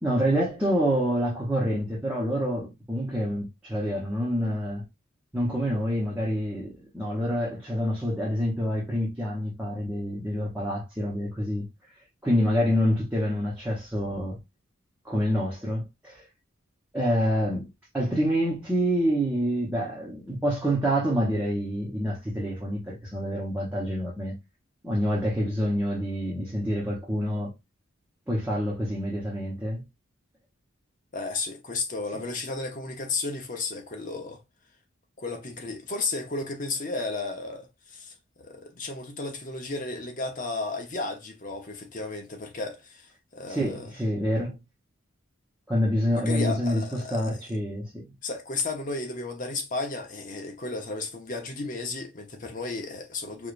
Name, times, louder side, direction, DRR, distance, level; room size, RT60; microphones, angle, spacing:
voice 1, 0.0-4.8 5.3-11.6 12.2-14.4 15.0-16.3 16.9-17.7 17.9-24.3 24.8-27.5 28.3-29.8 32.1-32.2 43.5-44.6 45.7-48.1, equal, 10° right, 1.0 m, -27 dB
voice 2, 31.1-34.4 35.2-43.9 46.1-47.4 48.2-53.5, left 3 dB, 40° left, 0.8 m, -33 dB
4.9 x 2.5 x 2.5 m
head